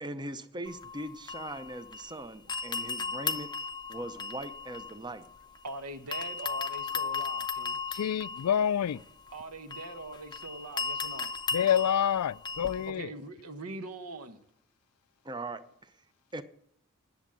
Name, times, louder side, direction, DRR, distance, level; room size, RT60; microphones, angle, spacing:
voice 1, 0.0-5.3 15.2-15.9 16.3-16.4, right 1 dB, 20° right, 0.6 m, -40 dB
sound 1, 0.7-2.2 2.5-5.7 6.1-12.9, left 5 dB, 20° left, 0.6 m, -36 dB
voice 2, 5.6-7.8 9.3-11.3 12.9-14.4, right 2 dB, 75° right, 1.1 m, -42 dB
voice 3, 7.9-9.0 11.5-13.1, left 9 dB, 85° left, 0.4 m, -27 dB
11.0 x 7.1 x 7.5 m
head